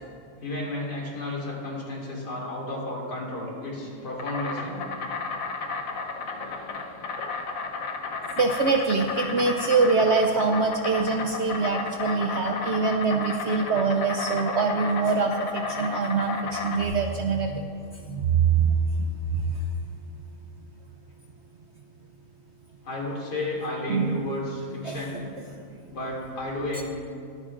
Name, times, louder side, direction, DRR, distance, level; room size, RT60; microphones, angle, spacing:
voice 1, 0.4-4.8 22.8-25.2 25.9-26.8, left 2 dB, 85° left, -4 dB, 3.0 m, -32 dB
Insect, 3.8-16.8, left 4 dB, 60° left, 1.2 m, -33 dB
voice 2, 8.4-17.7 18.1-19.6 23.9-24.3 24.8-25.2 25.5-25.6 26.8-26.9, right 4 dB, 65° right, 3 dB, 0.6 m, -24 dB
22.5 x 9.0 x 2.5 m, 2.3 s
omnidirectional pair, 1.7 m